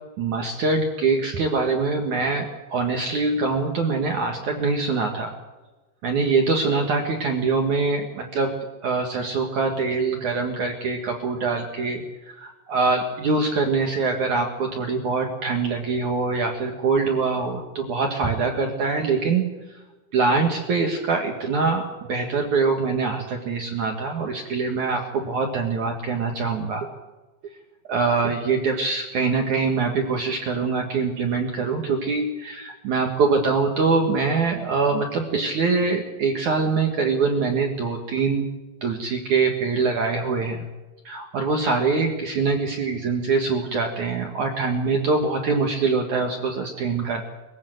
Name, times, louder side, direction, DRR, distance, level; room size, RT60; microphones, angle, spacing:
voice 1, 0.2-5.3 6.0-8.5 8.8-12.0 12.4-19.4 20.1-26.9 27.9-38.5 38.8-40.7 41.0-47.2, right 4 dB, 55° right, 3 dB, 2.2 m, -24 dB
23.5 x 15.5 x 7.9 m, 1.2 s
omnidirectional pair, 5.7 m